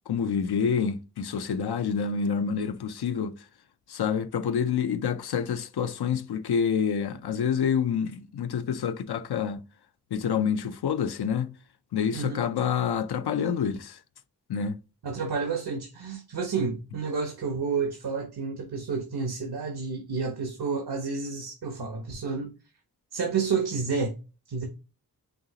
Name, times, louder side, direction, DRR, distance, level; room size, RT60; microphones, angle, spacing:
voice 1, 0.1-3.4 3.9-9.6 10.1-11.5 11.9-14.0 14.5-14.8, left 7 dB, 90° left, 0.6 m, -27 dB
voice 2, 12.1-12.4 15.0-22.5 23.1-24.2 24.5-24.6, right 5 dB, 80° right, 1.1 m, -30 dB
5.3 x 2.8 x 2.8 m
wide cardioid pair, 105°, 37 cm